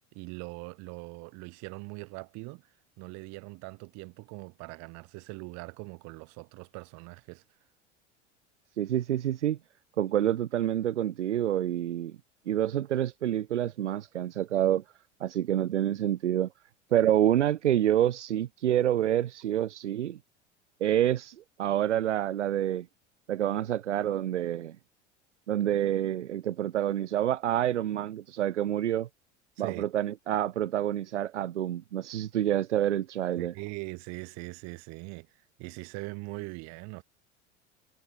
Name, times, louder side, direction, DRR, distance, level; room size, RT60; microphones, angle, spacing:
voice 1, 0.1-2.7 3.0-7.4 29.6-29.9 33.4-37.0, right 30 dB, 50° right, 2.7 m, -41 dB
voice 2, 8.8-9.6 10.0-12.2 12.5-14.8 15.2-16.5 16.9-20.2 20.8-22.9 23.3-24.8 25.5-29.1 29.6-33.5, right 11 dB, 75° right, 0.6 m, -27 dB
figure-of-eight pair, 75°, 36 cm